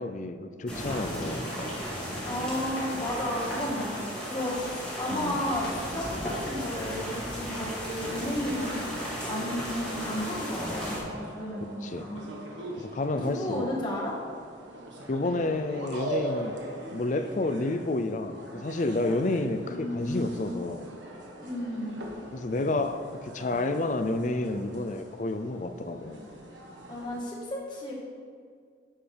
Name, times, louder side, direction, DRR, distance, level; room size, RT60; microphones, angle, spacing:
voice 1, 0.0-1.5 5.1-5.4 11.8-12.1 12.8-13.7 15.1-16.6 16.9-20.9 22.3-26.2, left 2 dB, 40° left, 9 dB, 0.5 m, -30 dB
sound 1, 0.7-11.0, equal, 5° left, 2.4 m, -35 dB
voice 2, 2.2-8.7 9.3-12.3 13.1-14.1 19.7-20.5 21.4-22.0 26.9-27.9, left 1 dB, 25° left, -4 dB, 1.7 m, -33 dB
sound 2, 8.0-27.2, right 1 dB, 75° right, 1.4 m, -41 dB
10.5 x 7.4 x 3.5 m, 2.1 s
head